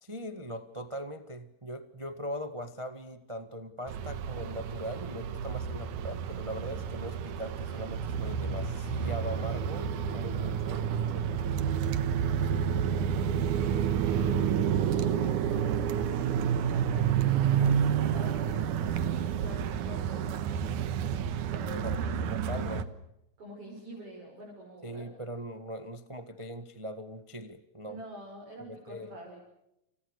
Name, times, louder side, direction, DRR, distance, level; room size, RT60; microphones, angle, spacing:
voice 1, 0.0-10.9 11.1-11.8 21.7-22.0 22.2-22.9 24.8-28.0 28.7-29.1, equal, 25° right, 9 dB, 0.7 m, -40 dB
sound 1, 3.9-22.8, right 8 dB, 80° right, 2.8 m, -29 dB
voice 2, 13.2-20.6 21.5-22.8 23.4-25.1 27.8-29.4, right 1 dB, 45° right, -2 dB, 7.4 m, -47 dB
30.0 x 30.0 x 6.6 m, 0.85 s
omnidirectional pair, 3.5 m